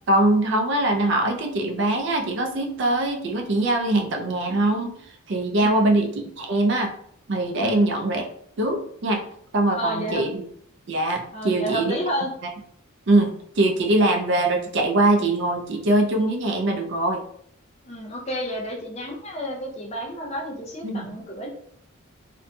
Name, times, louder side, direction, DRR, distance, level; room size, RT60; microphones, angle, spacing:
voice 1, 0.1-5.0 5.3-6.1 6.4-6.9 7.3-8.2 8.6-9.2 9.5-10.4 10.9-12.0 13.1-17.2 20.8-21.2, right 2 dB, 55° right, 3 dB, 0.4 m, -22 dB
voice 2, 5.6-5.9 7.6-7.9 9.7-10.2 11.3-12.3 17.8-21.5, equal, 30° left, -1 dB, 0.5 m, -30 dB
2.7 x 2.6 x 2.2 m, 0.65 s
head